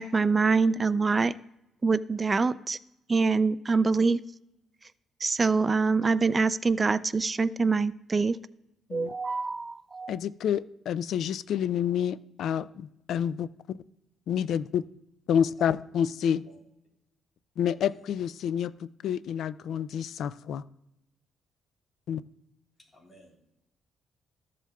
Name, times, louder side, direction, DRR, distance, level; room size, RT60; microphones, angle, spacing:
voice 1, 0.0-1.3 1.8-2.8 3.1-4.2 5.2-8.4 8.9-10.2, right 4 dB, 30° right, 16 dB, 0.4 m, -25 dB
voice 2, 10.1-13.5 14.3-14.8 15.3-16.4 17.6-20.6 22.1-22.2, left 8 dB, 75° left, 17 dB, 0.3 m, -28 dB
voice 3, 22.9-23.4, equal, 25° left, -1 dB, 3.5 m, -56 dB
14.0 x 7.3 x 2.3 m, 0.87 s
cardioid pair, 90°, 0 cm